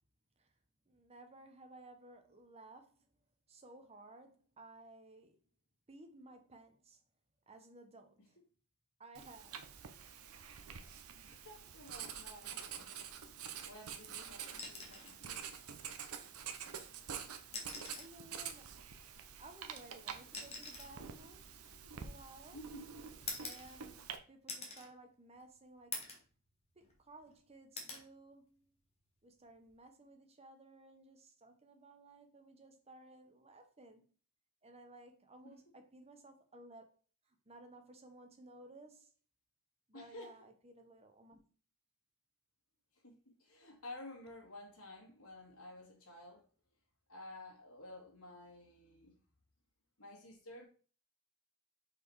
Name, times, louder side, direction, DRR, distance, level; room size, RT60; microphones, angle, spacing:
voice 1, 0.9-3.1 3.5-5.4 5.9-7.0 7.5-8.4 9.0-9.7 17.9-18.8 19.1-21.5 21.9-22.6 23.4-26.1 26.8-28.7 29.2-34.1 34.6-36.8 37.3-39.1 39.9-41.4, right 2 dB, 30° right, 1.0 m, -57 dB
Writing, 9.1-24.2, right 7 dB, 85° right, 0.8 m, -48 dB
voice 2, 11.2-15.5 22.5-22.9 35.4-35.6 39.9-40.3 42.9-46.5 47.1-49.2 50.0-50.7, left 1 dB, 80° left, 2.4 m, -53 dB
sound 1, 14.6-15.2 16.6-16.8 17.4-18.2 19.4-22.4 23.3-24.1 24.5-24.9 25.3-25.4 25.9-26.3 26.7-27.3 27.8-28.1 29.5-29.8, left 4 dB, 30° left, 1.5 m, -46 dB
5.5 x 4.3 x 4.7 m
head